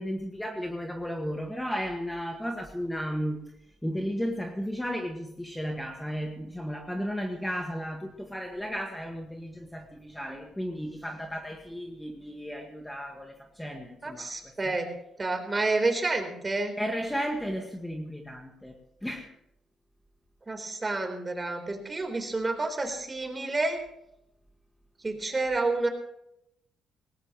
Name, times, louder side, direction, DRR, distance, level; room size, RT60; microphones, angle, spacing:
voice 1, 0.0-3.4 3.8-14.7 16.8-18.8 19.0-19.3, equal, 5° left, 2 dB, 1.9 m, -34 dB
voice 2, 14.0-14.9 15.2-16.7 20.5-23.8 25.0-25.9, right 2 dB, 25° right, 5 dB, 4.0 m, -29 dB
19.0 x 18.0 x 3.2 m, 0.80 s
cardioid pair, 90°, 0 cm